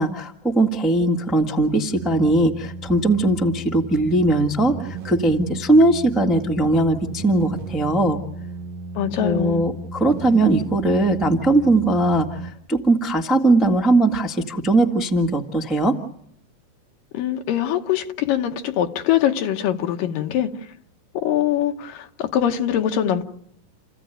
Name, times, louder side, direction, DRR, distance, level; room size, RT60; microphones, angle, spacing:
voice 1, 0.0-8.2 9.2-16.0, right 2 dB, ahead, 2 dB, 0.3 m, -19 dB
sound 1, 1.9-12.5, right 3 dB, 70° right, 1.2 m, -35 dB
voice 2, 9.0-9.6 17.1-20.5 21.1-23.2, left 10 dB, 85° left, 5 dB, 2.9 m, -23 dB
30.0 x 15.5 x 9.1 m, 0.75 s
omnidirectional pair, 3.8 m